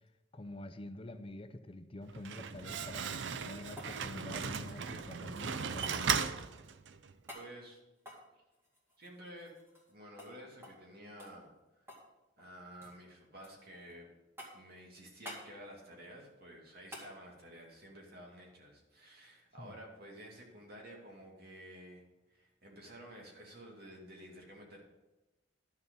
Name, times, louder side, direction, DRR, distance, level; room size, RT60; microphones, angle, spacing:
voice 1, 0.3-6.1 19.6-19.7, left 1 dB, 30° left, 9 dB, 0.7 m, -47 dB
Slam, 2.0-7.1, right 6 dB, 80° right, 0.5 m, -37 dB
sound 1, 3.8-5.2 5.8-6.0 7.3-7.5 8.0-9.9 10.2-10.3 10.6-10.9 11.2-12.1 12.4-13.0 13.4-13.9 14.4-14.7 15.2-15.5 16.9-17.1 19.5-19.6, equal, 15° right, 2.3 m, -51 dB
voice 2, 7.3-7.8 9.0-9.5 9.9-11.5 11.8-11.9 12.4-14.1 14.5-22.0 22.3-24.8, equal, 60° right, -1 dB, 2.6 m, -52 dB
11.0 x 6.7 x 5.4 m, 1.0 s
head